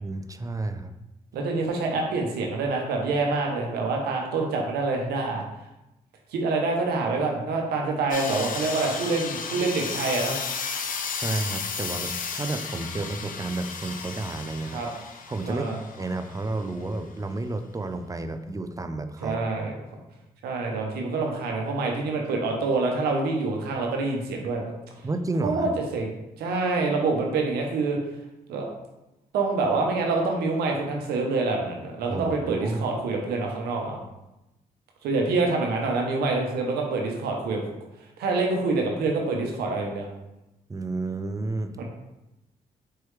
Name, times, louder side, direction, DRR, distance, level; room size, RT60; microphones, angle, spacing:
voice 1, 0.0-0.9 11.1-14.8 15.3-15.7 16.0-19.4 25.0-25.7 32.1-32.8 40.7-41.8, right 2 dB, 20° right, 8 dB, 0.4 m, -31 dB
voice 2, 1.3-5.4 6.3-10.4 14.7-14.9 15.4-15.8 19.2-19.8 20.4-24.7 25.4-26.1 26.4-28.0 28.5-28.7 29.3-34.0 35.0-37.6 38.2-40.1 41.8-41.9, right 3 dB, 90° right, 1 dB, 0.8 m, -26 dB
sound 1, 8.1-16.7, left 5 dB, 60° left, 0.6 m, -34 dB
4.5 x 3.1 x 3.1 m, 0.94 s
supercardioid pair, 50°, 16 cm